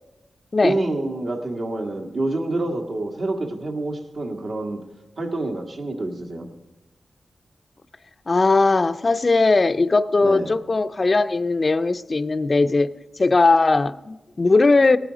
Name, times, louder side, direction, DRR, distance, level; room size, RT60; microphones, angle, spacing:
voice 1, 0.6-4.8 5.2-6.5 10.2-10.5, right 2 dB, 70° right, 1.6 m, -27 dB
voice 2, 8.3-12.9 13.2-15.0, left 3 dB, 45° left, 0.4 m, -19 dB
18.5 x 9.0 x 5.0 m
cardioid pair, 65°, 0 cm